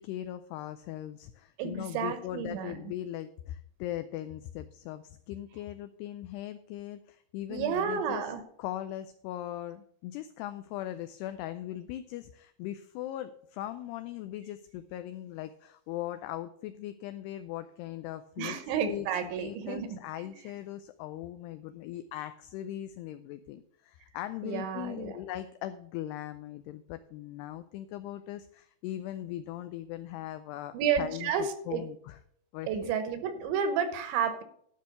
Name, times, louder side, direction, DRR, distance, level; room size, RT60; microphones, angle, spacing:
voice 1, 0.0-8.2 8.6-18.6 18.8-32.2 32.5-32.9, left 13 dB, 85° left, 10 dB, 2.4 m, -39 dB
voice 2, 1.6-2.8 7.5-8.4 18.4-20.3 24.4-25.2 30.7-31.8 32.7-34.4, right 7 dB, 80° right, 9 dB, 3.4 m, -31 dB
12.0 x 5.2 x 6.7 m, 0.65 s
omnidirectional pair, 5.2 m